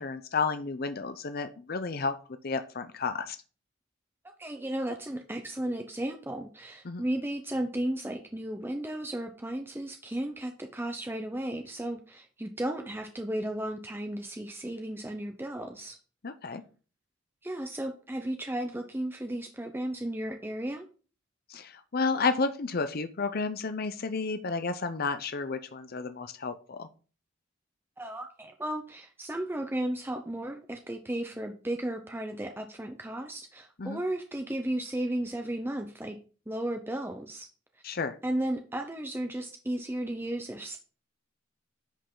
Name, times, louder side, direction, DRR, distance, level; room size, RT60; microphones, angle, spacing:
voice 1, 0.0-2.1 2.4-3.4 6.8-7.0 16.2-16.6 21.5-26.9 33.8-34.0 37.8-38.2, left 4 dB, 50° left, 9 dB, 0.6 m, -31 dB
voice 2, 4.4-16.0 17.4-20.9 28.0-36.2 36.5-37.5 38.2-40.8, right 1 dB, 10° right, 4 dB, 0.7 m, -34 dB
10.0 x 5.4 x 3.8 m, 0.37 s
head